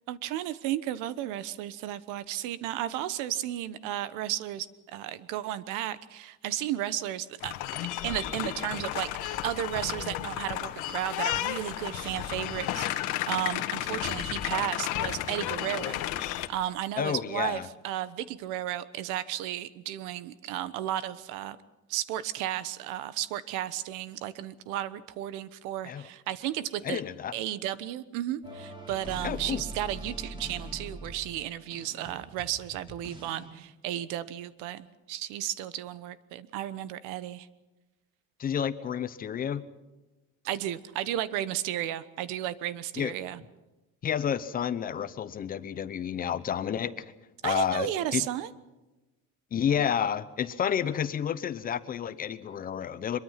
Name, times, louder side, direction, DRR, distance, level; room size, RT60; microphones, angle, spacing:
voice 1, 0.1-7.5 8.0-21.6 21.9-27.0 27.3-37.5 40.4-43.4 47.4-48.5, right 12 dB, 80° right, 15 dB, 1.2 m, -34 dB
sound 1, 7.4-16.5, left 13 dB, 75° left, 1.7 m, -33 dB
voice 2, 17.0-17.7 25.8-26.1 26.8-27.3 29.2-29.6 38.4-39.7 43.0-43.1 44.0-47.1 47.4-48.2 49.5-53.2, left 8 dB, 30° left, 13 dB, 0.8 m, -30 dB
sound 2, 28.4-33.5, right 1 dB, 15° right, 4.1 m, -42 dB
24.0 x 22.5 x 5.8 m, 1.1 s
cardioid pair, 165°, 31 cm